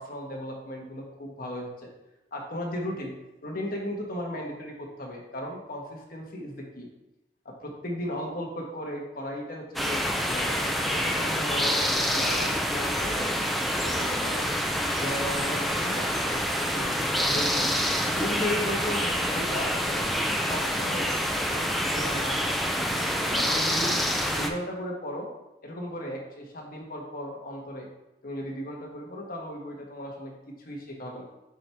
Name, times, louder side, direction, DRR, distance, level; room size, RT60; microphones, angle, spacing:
voice 1, 0.0-1.9 2.3-3.1 3.4-6.9 7.4-13.3 13.8-14.4 14.9-16.4 16.7-17.7 18.2-21.1 21.4-23.9 24.4-25.3 25.6-27.9 28.2-31.2, left 1 dB, 50° left, -1 dB, 1.4 m, -36 dB
sound 1, 9.8-24.5, equal, ahead, 0.5 m, -27 dB
7.6 x 4.5 x 3.5 m, 0.97 s
head